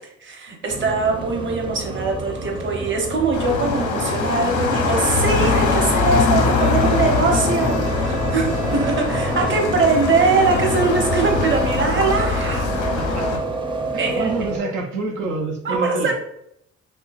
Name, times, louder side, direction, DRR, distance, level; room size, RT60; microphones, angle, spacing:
voice 1, 0.2-12.9 14.0-14.3 14.6-14.7 15.6-16.2, right 3 dB, 40° right, 2 dB, 0.9 m, -22 dB
sound 1, 0.7-14.6, right 2 dB, 15° right, 0.5 m, -29 dB
sound 2, 3.3-13.4, left 4 dB, 85° left, 1.0 m, -22 dB
Bowed string instrument, 6.4-11.1, right 4 dB, 55° right, 1.3 m, -40 dB
voice 2, 12.9-13.5 13.9-16.2, right 3 dB, 85° right, 1 dB, 0.6 m, -28 dB
4.4 x 2.8 x 2.4 m, 0.76 s
cardioid pair, 90°, 30 cm